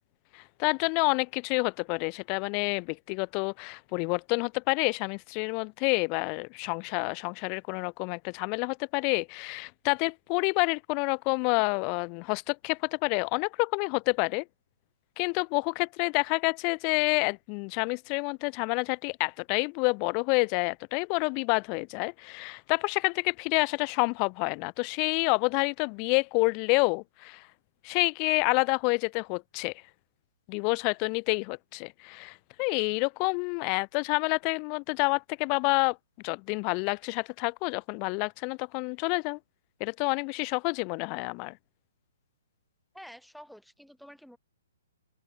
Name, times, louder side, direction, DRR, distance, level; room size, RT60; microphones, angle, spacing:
voice 1, 0.3-14.4 15.2-27.5 27.8-29.7 30.5-36.0 36.2-39.4 39.8-41.6, left 37 dB, 35° left, 0.9 m, -28 dB
voice 2, 42.9-44.4, equal, ahead, 6.5 m, -49 dB
hypercardioid pair, 135°, 0 cm